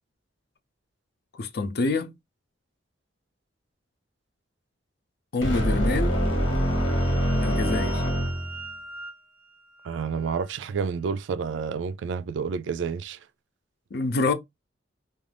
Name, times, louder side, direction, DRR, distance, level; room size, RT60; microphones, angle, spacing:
voice 1, 1.3-2.1 5.3-6.2 7.4-8.0 13.9-14.3, left 3 dB, 55° left, 0.5 m, -26 dB
sound 1, 5.4-8.7, equal, 90° left, 1.2 m, -24 dB
sound 2, 6.1-10.6, right 1 dB, 10° right, 0.6 m, -43 dB
voice 2, 9.8-13.2, right 6 dB, 65° right, 0.3 m, -29 dB
2.5 x 2.4 x 3.3 m
head